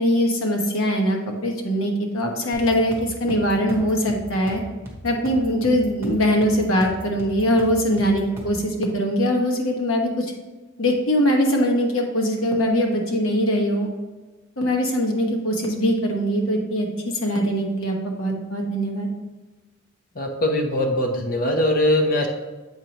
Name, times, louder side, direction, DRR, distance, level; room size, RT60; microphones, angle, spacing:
voice 1, 0.0-4.6 5.0-10.3 10.8-13.9 14.6-19.1, equal, 90° left, 1 dB, 1.2 m, -22 dB
sound 1, 2.5-8.7, equal, 10° right, 1.2 m, -38 dB
voice 2, 20.2-22.3, left 1 dB, 45° left, 2 dB, 0.8 m, -21 dB
7.7 x 5.2 x 3.0 m, 1.2 s
head